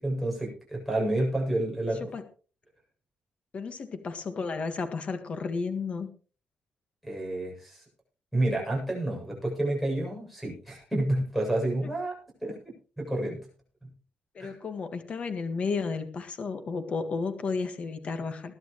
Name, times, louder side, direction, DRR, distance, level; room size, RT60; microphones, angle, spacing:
voice 1, 0.0-2.1 7.0-7.8 8.3-13.4 13.8-13.9 14.4-14.6, right 1 dB, ahead, 1 dB, 7.9 m, -30 dB
voice 2, 3.5-6.1 14.3-18.6, left 4 dB, 40° left, 8 dB, 1.8 m, -32 dB
21.0 x 11.0 x 3.2 m, 0.37 s
wide cardioid pair, 160°, 3 cm